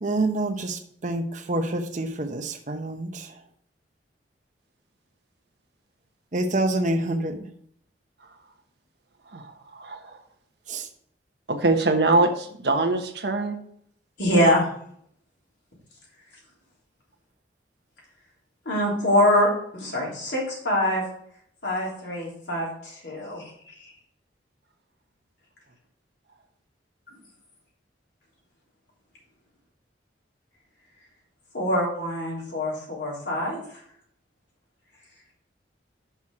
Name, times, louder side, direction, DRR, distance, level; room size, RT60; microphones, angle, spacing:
voice 1, 0.0-3.3 6.3-7.5 10.7-10.9, right 2 dB, 45° right, 6 dB, 0.8 m, -27 dB
voice 2, 9.3-10.0 11.5-13.6, right 2 dB, 65° right, 5 dB, 1.1 m, -23 dB
voice 3, 14.2-14.7 18.6-21.0 21.6-23.4 31.5-33.6, left 1 dB, 80° left, -4 dB, 3.2 m, -24 dB
6.1 x 5.8 x 4.8 m, 0.65 s
head